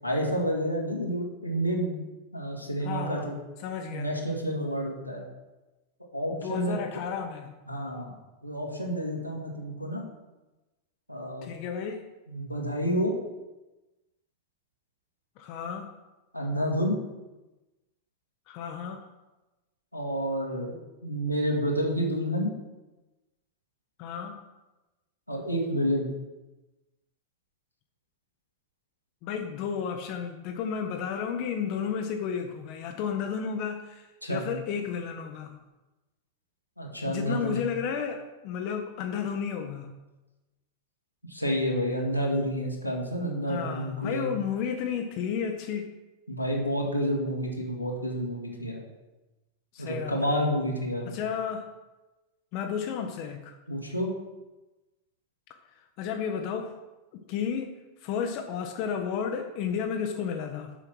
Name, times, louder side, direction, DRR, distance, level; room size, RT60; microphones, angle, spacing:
voice 1, 0.0-2.0 2.3-3.3 3.9-5.2 6.1-6.8 7.7-8.2 8.4-10.0 11.1-11.5 12.3-13.2 16.3-17.0 19.9-20.8 21.0-22.5 25.3-26.1 34.2-34.4 36.8-37.6 41.3-44.4 46.3-48.8 49.8-51.2 53.7-54.1, equal, 90° left, -2 dB, 1.8 m, -29 dB
voice 2, 2.8-3.3 3.6-4.2 6.3-7.5 11.4-12.0 15.4-15.9 18.5-19.0 24.0-24.4 29.2-35.6 37.1-40.0 43.5-45.9 49.7-50.5 51.0-51.7 52.5-53.6 55.7-56.8 57.1-60.7, left 7 dB, 45° left, 5 dB, 0.8 m, -32 dB
7.0 x 5.7 x 6.2 m, 1.1 s
figure-of-eight pair, 90°, 0 cm